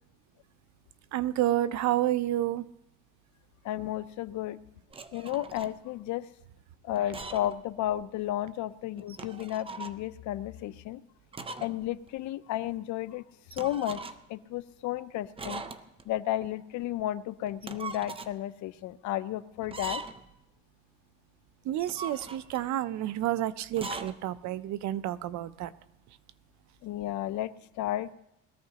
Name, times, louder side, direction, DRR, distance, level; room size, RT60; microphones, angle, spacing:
voice 1, 1.1-2.7 21.6-25.7, right 13 dB, 65° right, 15 dB, 0.6 m, -29 dB
voice 2, 3.6-4.6 5.1-6.3 6.8-11.0 11.6-13.2 13.5-14.0 14.3-15.6 16.1-20.0 26.8-28.1, left 13 dB, 70° left, 15 dB, 0.6 m, -33 dB
sound 1, 4.9-5.7 6.9-7.6 7.9-8.0 9.0-10.0 11.3-11.8 12.1-12.2 13.5-14.4 15.4-16.1 17.5-18.3 19.6-20.3 21.7-22.7 23.7-24.2, right 3 dB, 20° right, 0.6 m, -41 dB
21.5 x 14.5 x 2.9 m, 0.83 s
cardioid pair, 130°, 30 cm